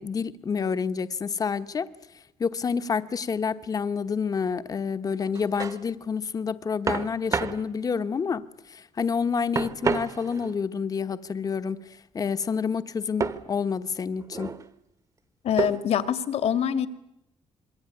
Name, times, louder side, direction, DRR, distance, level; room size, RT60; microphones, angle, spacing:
voice 1, 0.0-1.9 2.1-14.5, left 6 dB, 30° left, 1.2 m, -29 dB
sound 1, 5.2-5.8 6.9-7.6 9.6-10.6 13.2-13.5 14.2-14.6 15.6-16.0, right 5 dB, 30° right, 1.3 m, -29 dB
voice 2, 15.4-16.9, left 9 dB, 65° left, 2.1 m, -24 dB
26.5 x 22.5 x 9.8 m
cardioid pair, 150°, 12 cm